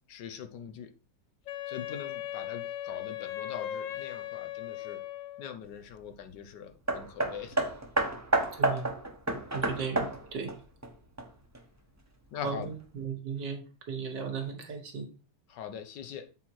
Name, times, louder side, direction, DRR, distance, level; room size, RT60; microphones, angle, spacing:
voice 1, 0.1-0.9 1.7-5.0 5.4-7.6 12.3-12.7 15.5-16.3, left 8 dB, 85° left, 1.5 m, -42 dB
Wind instrument woodwind instrument, 1.5-5.6, left 12 dB, 70° left, 0.7 m, -38 dB
Hammer, 6.9-11.6 12.4-12.5, right 2 dB, 15° right, 0.8 m, -30 dB
voice 2, 8.5-8.9 9.5-10.6 12.4-15.1, right 6 dB, 80° right, 2.2 m, -36 dB
7.4 x 4.3 x 4.6 m
omnidirectional pair, 1.8 m